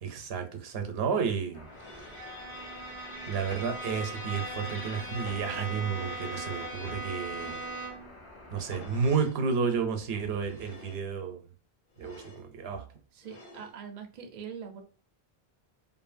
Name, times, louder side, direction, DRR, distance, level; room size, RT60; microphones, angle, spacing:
voice 1, 0.0-1.7 1.9-2.1 3.2-7.6 8.5-11.4 12.0-12.8, right 6 dB, 75° right, 6 dB, 0.9 m, -31 dB
sound 1, 1.5-9.2, left 1 dB, 35° left, 0.6 m, -50 dB
Bowed string instrument, 1.7-8.2, right 1 dB, 90° left, 1.3 m, -39 dB
sound 2, 1.7-2.3 3.3-4.3 5.3-6.0 7.2-7.9 8.7-9.4 10.3-11.0 11.9-12.5 13.2-13.8, left 2 dB, 60° left, 1.0 m, -50 dB
voice 2, 13.1-14.8, right 7 dB, 50° right, 4 dB, 0.5 m, -43 dB
2.6 x 2.5 x 2.5 m, 0.39 s
omnidirectional pair, 1.0 m